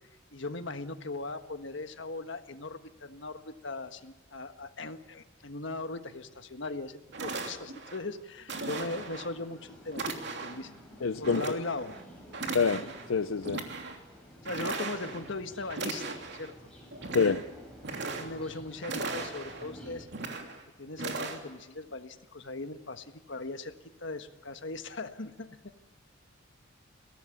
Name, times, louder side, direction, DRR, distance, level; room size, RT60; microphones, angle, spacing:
voice 1, 0.3-10.7 11.2-12.0 14.4-16.5 17.0-17.4 18.1-20.1 20.8-23.7 24.0-25.7, left 2 dB, 65° left, 8 dB, 1.5 m, -39 dB
sound 1, 6.7-6.8 7.1-8.0 8.5-9.3 9.9-10.7 11.2-12.0 12.3-13.1 13.4-14.0 14.5-15.3 15.7-16.5 16.9-17.5 17.8-18.5 18.8-19.7 20.1-20.6 21.0-21.4, right 3 dB, 60° right, 3.0 m, -37 dB
sound 2, 8.8-20.0, equal, 5° left, 7.5 m, -51 dB
voice 2, 11.0-11.6 12.5-13.6 17.1-17.4, left 5 dB, 80° left, 11 dB, 0.6 m, -27 dB
22.5 x 17.5 x 8.6 m, 1.2 s
head